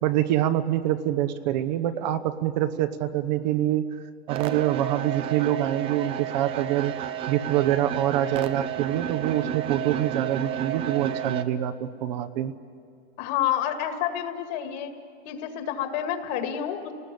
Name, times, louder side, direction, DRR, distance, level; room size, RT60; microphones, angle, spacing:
voice 1, 0.0-3.9 4.3-6.9 7.3-12.5, right 12 dB, 45° right, 10 dB, 1.0 m, -25 dB
sound 1, 4.3-11.4, right 11 dB, 20° right, 0.6 m, -31 dB
voice 2, 13.2-14.9 15.3-16.9, left 10 dB, 40° left, 7 dB, 2.1 m, -29 dB
30.0 x 19.5 x 8.4 m, 2.3 s
supercardioid pair, 160°, 32 cm